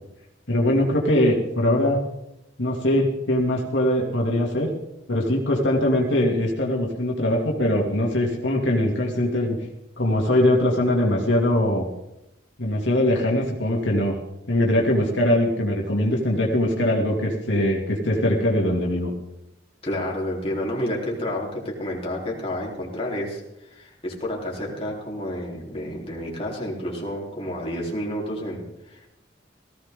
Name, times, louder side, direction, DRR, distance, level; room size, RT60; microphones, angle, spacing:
voice 1, 0.5-2.0 2.6-4.7 5.1-9.6 10.0-11.9 12.6-14.2 14.5-19.1, left 1 dB, 75° left, -1 dB, 2.7 m, -22 dB
voice 2, 19.8-23.4 23.7-29.1, left 1 dB, 30° left, -3 dB, 3.7 m, -30 dB
18.0 x 16.0 x 3.8 m, 0.88 s
head